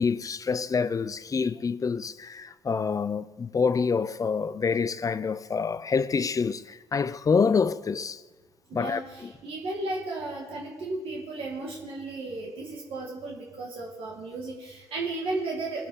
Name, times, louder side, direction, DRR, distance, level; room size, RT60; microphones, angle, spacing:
voice 1, 0.0-8.2 8.7-9.3, left 5 dB, 35° left, 0.5 m, -27 dB
voice 2, 8.7-15.9, right 2 dB, 70° right, 2.1 m, -34 dB
18.5 x 7.6 x 4.1 m
supercardioid pair, 60°, 10 cm